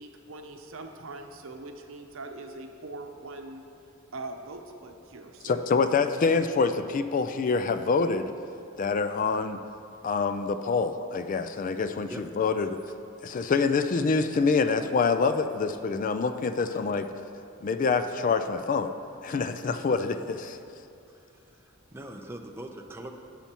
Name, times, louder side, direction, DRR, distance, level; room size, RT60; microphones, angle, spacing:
voice 1, 0.0-3.6 4.1-5.7, right 2 dB, 75° right, 4 dB, 0.8 m, -42 dB
voice 2, 5.4-8.3 8.8-9.6 10.0-12.8 13.2-17.1 17.6-18.9 19.2-20.6, left 4 dB, 40° left, 10 dB, 0.3 m, -26 dB
voice 3, 21.1-23.1, right 1 dB, 10° right, 3 dB, 0.5 m, -43 dB
17.0 x 5.8 x 2.9 m, 2.6 s
head